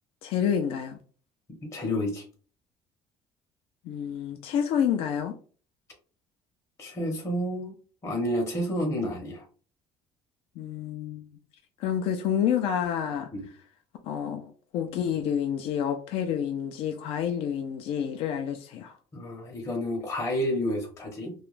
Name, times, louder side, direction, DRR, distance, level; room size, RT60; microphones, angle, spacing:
voice 1, 0.2-1.0 3.8-5.3 10.6-11.3 11.8-13.3 14.0-19.0, left 8 dB, 70° left, 0.4 m, -29 dB
voice 2, 1.7-2.2 6.8-7.7 8.0-9.4 13.3-13.5 19.1-21.3, left 1 dB, 30° left, 0.7 m, -30 dB
2.3 x 2.1 x 3.1 m
cardioid pair, 100°, 10 cm